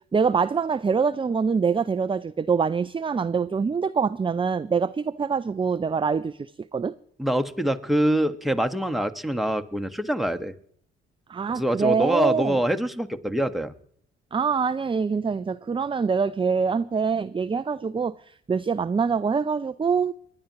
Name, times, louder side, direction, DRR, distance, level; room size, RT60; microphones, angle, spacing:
voice 1, 0.1-6.9 11.3-12.6 14.3-18.1 18.5-20.1, right 5 dB, 15° right, 0.4 m, -24 dB
voice 2, 7.2-10.5 11.5-13.7, right 1 dB, ahead, 1.3 m, -25 dB
29.5 x 10.5 x 3.0 m
hypercardioid pair, 45°, 30 cm